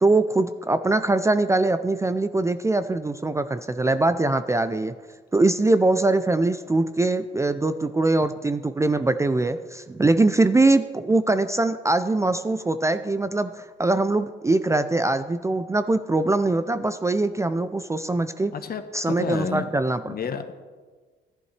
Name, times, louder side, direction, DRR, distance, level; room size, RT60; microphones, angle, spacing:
voice 1, 0.0-4.9 5.3-18.5 18.9-20.1, right 2 dB, 15° right, 11 dB, 0.4 m, -22 dB
voice 2, 18.5-20.5, left 6 dB, 50° left, 8 dB, 1.0 m, -31 dB
14.5 x 11.0 x 3.3 m, 1.4 s
cardioid pair, 90°, 20 cm